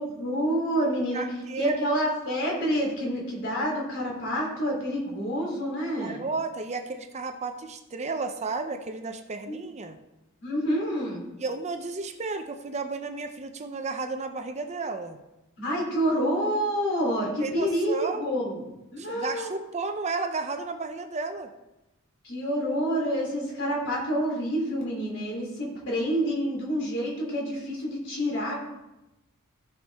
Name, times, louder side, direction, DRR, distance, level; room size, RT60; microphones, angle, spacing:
voice 1, 0.0-1.2 1.6-6.2 9.5-9.7 10.4-11.2 15.6-18.6 18.9-19.5 22.2-28.6, equal, 60° left, -2 dB, 3.3 m, -28 dB
voice 2, 1.1-1.8 6.0-10.0 11.4-15.2 17.4-18.3 19.0-21.5, right 3 dB, 30° right, 7 dB, 0.6 m, -33 dB
15.5 x 5.9 x 3.5 m, 0.98 s
head